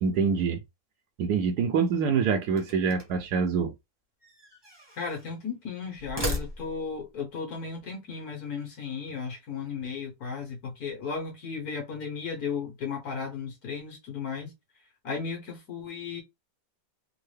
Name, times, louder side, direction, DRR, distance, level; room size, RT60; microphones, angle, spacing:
voice 1, 0.0-0.6 1.2-3.7, right 6 dB, 70° right, 1.1 m, -25 dB
sound 1, 2.5-3.3 4.2-5.3 5.9-7.0, equal, 20° right, 0.7 m, -36 dB
voice 2, 5.0-14.5 15.0-16.2, left 5 dB, 60° left, 1.7 m, -35 dB
3.7 x 2.0 x 3.2 m
omnidirectional pair, 1.9 m